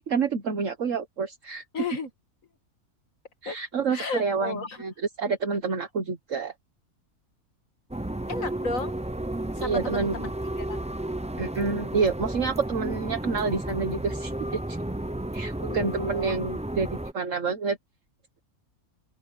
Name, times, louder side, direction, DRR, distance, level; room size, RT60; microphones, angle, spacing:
voice 1, 0.1-1.6 3.4-6.5 9.6-10.1 11.4-14.8 15.3-16.9 17.1-17.8, right 5 dB, 60° right, 1.7 m, -28 dB
voice 2, 1.7-2.1 3.5-3.6 3.9-4.8 8.3-9.0 9.6-10.8 15.6-16.5, left 3 dB, 60° left, 2.4 m, -34 dB
sound 1, 7.9-17.1, right 1 dB, 10° right, 0.4 m, -33 dB
open air
omnidirectional pair, 1.5 m